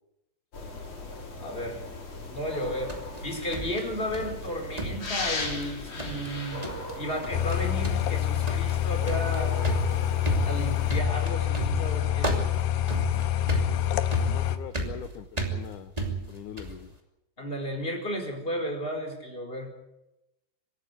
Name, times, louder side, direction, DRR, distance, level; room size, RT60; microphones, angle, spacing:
sound 1, 0.5-11.0, left 2 dB, 40° left, 4.9 m, -38 dB
voice 1, 1.4-1.8 2.3-6.7 7.0-9.5 10.4-12.3 13.4-13.7 17.4-19.7, equal, 15° left, 2 dB, 4.4 m, -33 dB
sound 2, 2.5-4.5 4.8-5.7 6.0-6.3 6.6-7.0 7.2-7.6 7.8-16.8, right 2 dB, 10° right, 2.2 m, -33 dB
sound 3, 7.3-14.6, left 12 dB, 90° left, 3.0 m, -27 dB
voice 2, 14.2-15.9 16.3-16.9, left 11 dB, 75° left, 9 dB, 1.9 m, -42 dB
25.0 x 13.5 x 9.2 m, 0.91 s
omnidirectional pair, 4.6 m